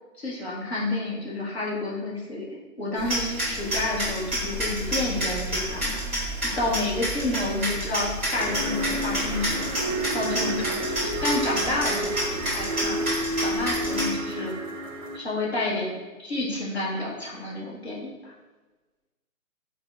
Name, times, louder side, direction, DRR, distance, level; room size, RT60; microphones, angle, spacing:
voice 1, 0.2-6.2 6.6-13.1 13.4-14.9 15.1-15.9 16.2-18.3, left 2 dB, 45° left, -4 dB, 0.7 m, -30 dB
sound 1, 3.0-14.1, equal, 10° right, 0.9 m, -30 dB
sound 2, 8.3-15.2, right 1 dB, 55° right, 0.5 m, -30 dB
5.2 x 2.0 x 2.2 m, 1.2 s
hypercardioid pair, 175°, 45 cm